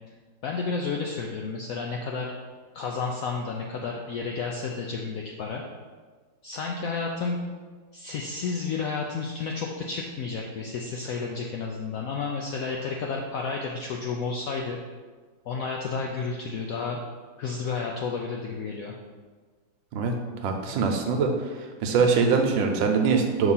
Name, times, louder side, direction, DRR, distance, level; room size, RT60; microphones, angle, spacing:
voice 1, 0.4-2.3 2.7-5.6 6.4-7.4 7.9-14.8 15.5-17.0 17.4-19.0, left 4 dB, 85° left, 1 dB, 0.7 m, -31 dB
voice 2, 20.4-21.3 21.8-23.5, right 5 dB, 85° right, 4 dB, 1.4 m, -22 dB
5.8 x 3.0 x 5.5 m, 1.5 s
omnidirectional pair, 2.0 m